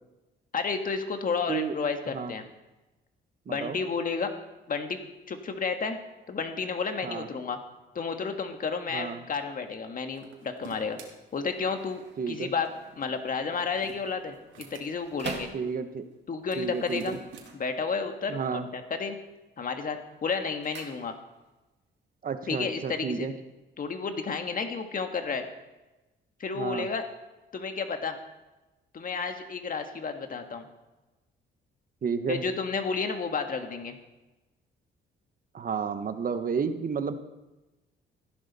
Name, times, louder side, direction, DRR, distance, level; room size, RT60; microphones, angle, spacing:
voice 1, 0.5-2.4 3.5-4.3 4.7-5.0 5.3-6.0 6.3-7.6 7.9-11.0 11.3-12.7 13.0-14.4 14.7-15.5 16.3-17.2 17.5-19.2 19.6-21.2 22.5-23.3 23.8-25.5 26.4-27.0 27.5-28.2 28.9-30.7 32.3-34.0, left 5 dB, 45° left, 6 dB, 1.6 m, -31 dB
voice 2, 3.5-3.8 7.0-7.3 8.9-9.2 12.2-12.5 15.5-16.1 16.6-17.2 18.3-18.7 22.2-23.3 26.6-26.9 32.0-32.4 35.5-37.1, right 6 dB, 45° right, 9 dB, 1.1 m, -31 dB
sound 1, 10.1-11.1 13.4-14.9 16.4-17.5, right 6 dB, 80° right, 2.7 m, -47 dB
sound 2, 11.2-16.2 17.2-18.4 18.6-19.1 19.5-21.6 21.8-21.9, right 6 dB, 60° right, 1.9 m, -46 dB
15.5 x 11.0 x 4.2 m, 1.1 s
cardioid pair, 90°, 20 cm